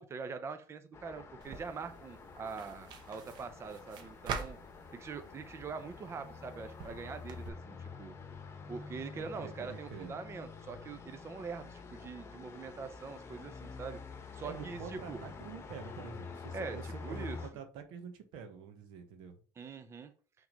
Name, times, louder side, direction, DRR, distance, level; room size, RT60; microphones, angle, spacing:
voice 1, 0.0-4.6 4.9-8.1 8.7-14.0 14.3-15.2 16.5-17.4 19.6-20.1, right 5 dB, 35° right, 0.8 m, -43 dB
Traffic noise roadway noise, 0.9-17.5, left 4 dB, 30° left, 1.3 m, -48 dB
sound 1, 1.4-7.5, right 6 dB, 65° right, 1.2 m, -46 dB
voice 2, 9.1-10.1 14.4-19.3, right 6 dB, 80° right, 1.4 m, -47 dB
6.0 x 3.8 x 5.3 m
supercardioid pair, 100°, 8 cm